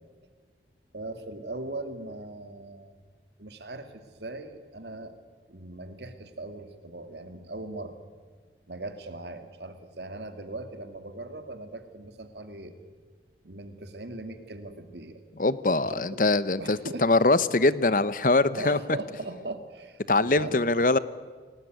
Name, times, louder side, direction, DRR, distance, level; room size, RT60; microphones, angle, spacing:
voice 1, 0.9-2.9 3.4-5.2 5.5-8.0 8.7-12.7 13.4-15.2 15.8-16.2 16.6-17.1 18.5-20.6, right 2 dB, 75° right, 8 dB, 2.5 m, -39 dB
voice 2, 15.4-18.8 20.1-21.0, left 2 dB, 50° left, 16 dB, 0.9 m, -23 dB
28.5 x 18.5 x 9.5 m, 1.5 s
head